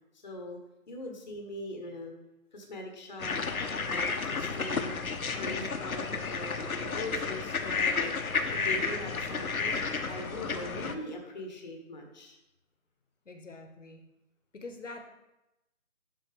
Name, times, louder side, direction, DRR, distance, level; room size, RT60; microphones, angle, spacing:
voice 1, 0.1-0.6 0.9-2.1 2.5-3.4 3.9-5.0 5.3-8.2 8.5-9.8 10.1-12.4, left 1 dB, 30° left, 2 dB, 1.0 m, -41 dB
sound 1, 3.2-10.9, left 4 dB, 85° left, 1.0 m, -32 dB
voice 2, 13.3-14.1 14.5-15.1, left 3 dB, 60° left, 5 dB, 1.1 m, -44 dB
11.5 x 4.3 x 3.3 m, 0.94 s
figure-of-eight pair, 170°, 42 cm